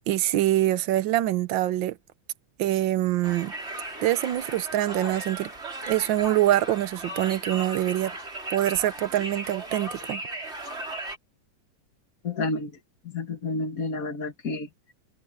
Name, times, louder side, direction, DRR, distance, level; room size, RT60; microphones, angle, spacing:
voice 1, 0.1-2.0 2.6-3.5 4.0-5.5 5.9-8.1 8.5-10.2, right 14 dB, 85° right, 1.5 m, -24 dB
Conversation, 3.2-11.2, right 2 dB, 35° right, 5.4 m, -37 dB
voice 2, 12.2-12.7 13.0-14.7, left 3 dB, 50° left, 2.0 m, -30 dB
omnidirectional pair, 2.0 m